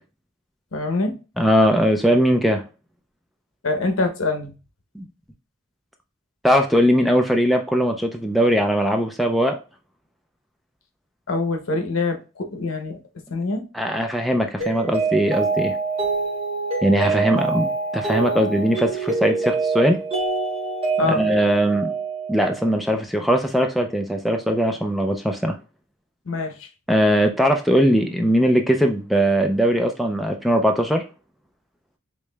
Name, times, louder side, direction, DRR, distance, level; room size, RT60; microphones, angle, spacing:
voice 1, 0.7-1.1 3.6-4.5 11.3-13.0 13.3-13.6 21.0-21.2 26.3-26.6, left 3 dB, 80° left, 0.8 m, -24 dB
voice 2, 1.4-2.6 4.9-5.1 6.4-9.6 13.7-15.7 16.8-20.0 21.0-21.9 22.3-25.6 26.9-31.0, equal, ahead, 0.3 m, -20 dB
Mallet percussion, 14.6-22.8, right 4 dB, 30° right, 1.2 m, -25 dB
4.8 x 3.1 x 2.2 m
head